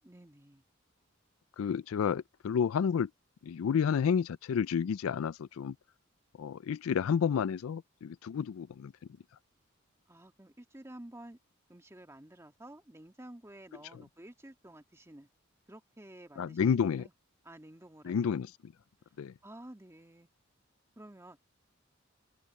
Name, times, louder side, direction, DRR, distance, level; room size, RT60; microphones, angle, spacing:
voice 1, 0.0-0.6 10.1-11.4 11.7-15.3 15.7-17.1 17.4-18.3 19.4-20.3 21.0-21.4, right 1 dB, 15° right, 1.8 m, -51 dB
voice 2, 1.6-3.1 3.4-5.8 6.4-8.9 13.9-14.0 16.4-17.1 18.0-18.7 19.2-19.3, left 7 dB, 85° left, 0.4 m, -30 dB
head